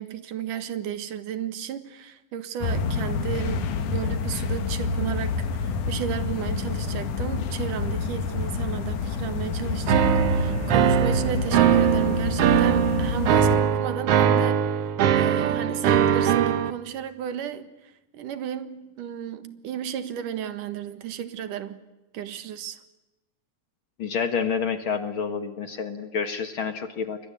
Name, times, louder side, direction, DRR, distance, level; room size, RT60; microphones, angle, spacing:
voice 1, 0.0-14.7 15.1-21.8 22.1-22.8, right 9 dB, 90° right, 3.2 m, -33 dB
sound 1, 2.6-13.6, left 5 dB, 75° left, 3.2 m, -28 dB
sound 2, 9.9-16.7, right 9 dB, 60° right, 1.7 m, -21 dB
voice 2, 24.0-27.2, left 6 dB, 50° left, 2.0 m, -28 dB
28.5 x 23.5 x 8.3 m
omnidirectional pair, 3.6 m